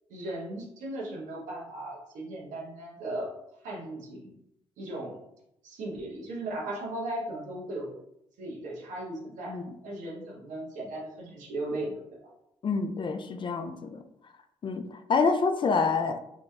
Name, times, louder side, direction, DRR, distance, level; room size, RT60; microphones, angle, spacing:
voice 1, 0.1-3.3 3.6-4.3 4.8-5.2 5.6-7.9 8.4-9.6 9.8-12.0, right 1 dB, 75° right, -2 dB, 0.9 m, -37 dB
voice 2, 12.6-14.0 14.6-16.2, left 4 dB, 40° left, 8 dB, 0.4 m, -27 dB
3.0 x 2.7 x 2.3 m, 0.80 s
supercardioid pair, 55°, 13 cm